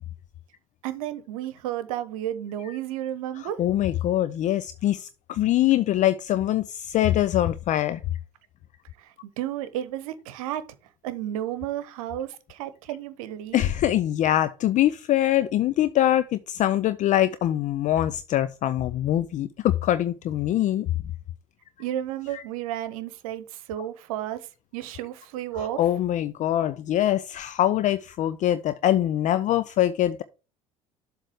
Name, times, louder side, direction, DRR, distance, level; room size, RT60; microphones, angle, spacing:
voice 1, 0.8-3.6 9.0-9.1 9.4-10.6 11.0-13.6 21.8-24.4 24.7-25.8, right 12 dB, 70° right, 0.9 m, -32 dB
voice 2, 3.4-8.0 13.5-20.9 22.3-22.4 25.5-30.2, left 12 dB, 45° left, 0.5 m, -23 dB
7.5 x 3.3 x 6.3 m
hypercardioid pair, 65°, 18 cm